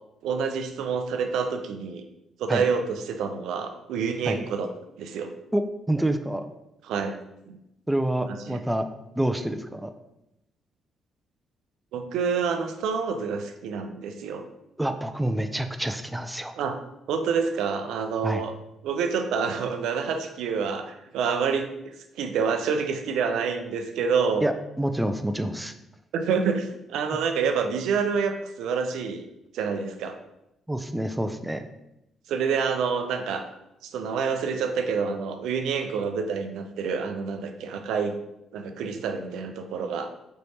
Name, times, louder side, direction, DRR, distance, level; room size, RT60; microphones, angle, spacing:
voice 1, 0.2-2.0 2.4-4.7 5.0-5.3 6.8-7.2 7.5-7.6 8.5-8.6 11.9-14.4 16.6-16.8 17.1-18.5 18.8-21.7 22.1-24.4 26.1-29.2 29.5-30.2 32.3-33.5 33.8-38.2 38.5-40.1, right 6 dB, 85° right, 6 dB, 0.4 m, -27 dB
voice 2, 5.5-6.5 7.9-8.8 9.2-9.9 14.8-16.5 18.2-18.4 24.4-25.7 27.1-27.2 30.7-31.7, right 1 dB, 5° right, 7 dB, 0.3 m, -27 dB
4.3 x 3.2 x 2.7 m, 0.86 s
cardioid pair, 90°, 0 cm